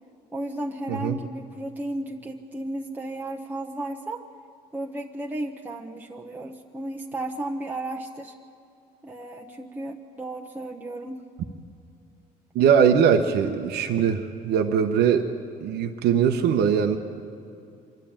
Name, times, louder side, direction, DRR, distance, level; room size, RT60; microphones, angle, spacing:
voice 1, 0.3-4.2 4.7-8.3 9.0-11.3, right 1 dB, 10° right, 1 dB, 1.0 m, -34 dB
voice 2, 0.9-1.2 12.5-15.3 15.6-17.0, right 7 dB, 75° right, 5 dB, 1.1 m, -21 dB
26.0 x 11.5 x 8.9 m, 2.5 s
cardioid pair, 110°, 17 cm